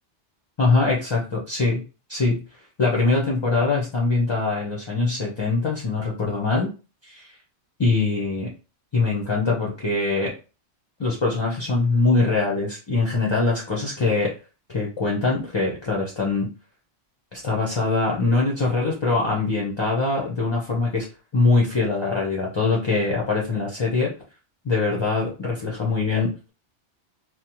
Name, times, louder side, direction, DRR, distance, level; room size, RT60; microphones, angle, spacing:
voice 1, 0.6-1.8 2.1-2.4 2.8-6.7 7.0-7.3 7.8-8.5 8.9-10.3 11.0-14.3 14.7-16.5 17.3-21.1 21.3-24.1 24.6-26.3, left 3 dB, 40° left, -2 dB, 0.4 m, -23 dB
2.8 x 2.0 x 2.9 m, 0.33 s
omnidirectional pair, 1.2 m